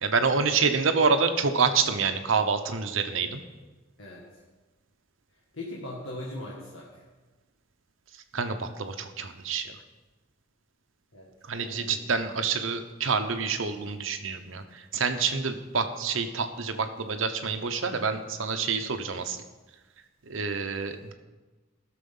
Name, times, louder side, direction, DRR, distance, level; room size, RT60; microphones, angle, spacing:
voice 1, 0.0-3.4 8.3-9.7 11.4-19.4 20.3-21.1, right 5 dB, 80° right, 7 dB, 0.9 m, -27 dB
voice 2, 5.5-7.0 11.1-11.3 11.6-12.0, left 1 dB, 75° left, -4 dB, 1.8 m, -39 dB
16.0 x 6.8 x 5.5 m, 1.2 s
head